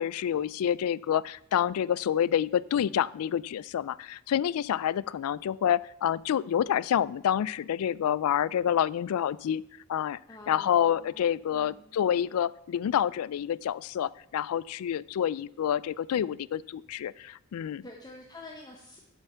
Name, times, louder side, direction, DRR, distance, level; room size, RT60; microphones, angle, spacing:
voice 1, 0.0-9.6 9.9-10.2 10.5-17.8, left 9 dB, 75° left, 18 dB, 0.3 m, -28 dB
voice 2, 10.3-12.0 17.2-17.3 17.8-19.0, left 2 dB, 20° left, 0 dB, 0.9 m, -48 dB
7.9 x 5.6 x 7.0 m, 0.75 s
head